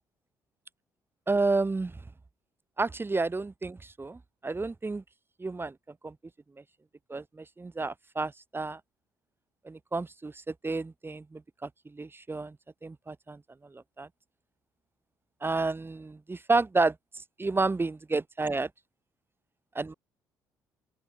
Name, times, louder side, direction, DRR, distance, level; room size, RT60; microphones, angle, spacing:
voice 1, 1.3-1.9 2.8-5.0 5.4-5.7 6.0-6.1 7.1-8.8 9.6-12.6 12.8-14.1 15.4-17.0 17.4-18.7 19.8-19.9, right 3 dB, 25° right, 1.8 m, -30 dB
open air
hypercardioid pair, 50°, 10 cm